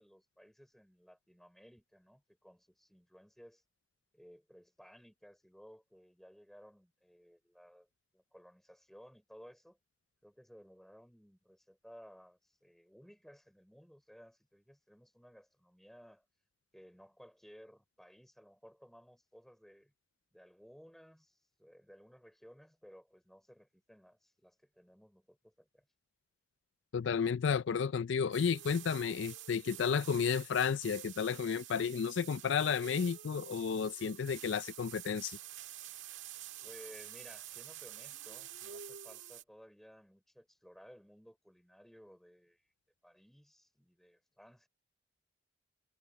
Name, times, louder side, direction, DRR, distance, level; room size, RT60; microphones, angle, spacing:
voice 1, 0.0-3.6 4.1-7.9 8.1-9.8 10.2-16.2 16.7-19.9 20.3-25.9 36.6-42.6 43.0-44.7, equal, ahead, 4.1 m, -58 dB
voice 2, 26.9-35.4, left 6 dB, 75° left, 0.4 m, -32 dB
sound 1, 28.3-39.4, right 11 dB, 90° right, 1.7 m, -48 dB
head